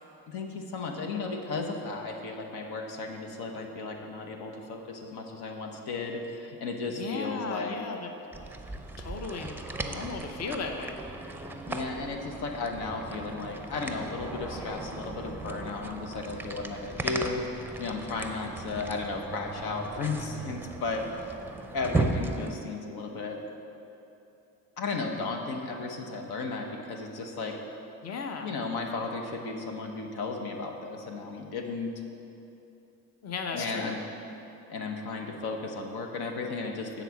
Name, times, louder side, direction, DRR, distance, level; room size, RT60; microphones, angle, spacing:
voice 1, 0.3-7.7 11.7-21.3 21.7-23.4 24.8-27.6 28.4-31.9 33.5-34.0 34.7-37.0, left 3 dB, 75° left, 2 dB, 1.0 m, -34 dB
voice 2, 6.9-8.1 9.0-11.0 28.0-28.5 33.2-34.0, left 4 dB, 40° left, 4 dB, 0.8 m, -36 dB
sound 1, 8.3-22.6, right 2 dB, 5° right, 0.6 m, -36 dB
9.0 x 4.1 x 7.1 m, 2.8 s
supercardioid pair, 75°, 39 cm